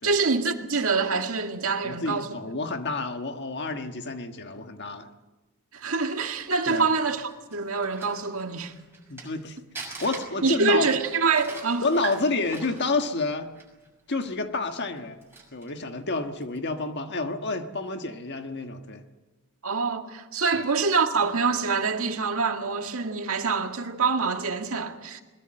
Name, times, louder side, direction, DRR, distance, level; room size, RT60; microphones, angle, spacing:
voice 1, 0.0-2.3 5.7-8.7 10.4-11.9 19.6-25.2, right 4 dB, 70° right, 2.0 m, -25 dB
voice 2, 1.8-5.1 6.7-6.9 9.1-9.6 10.0-10.9 11.8-13.5 14.1-15.2 15.5-19.0 20.5-20.7, left 3 dB, 50° left, 1.5 m, -29 dB
Crumpling crinkling, 6.4-9.4 9.7-13.9 14.2-14.3 14.9-15.8 16.3-16.6, right 3 dB, 10° right, 6.2 m, -44 dB
21.5 x 21.0 x 7.7 m
head